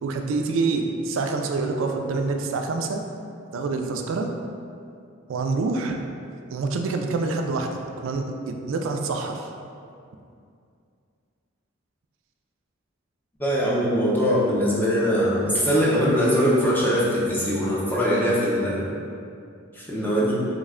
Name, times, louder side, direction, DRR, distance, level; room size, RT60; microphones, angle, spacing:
voice 1, 0.0-3.0 3.5-4.3 5.3-6.0 6.5-9.5, right 3 dB, 65° right, 4 dB, 0.3 m, -26 dB
voice 2, 13.4-18.9 19.7-20.5, equal, 10° left, -7 dB, 0.5 m, -22 dB
3.3 x 2.1 x 3.6 m, 2.4 s
head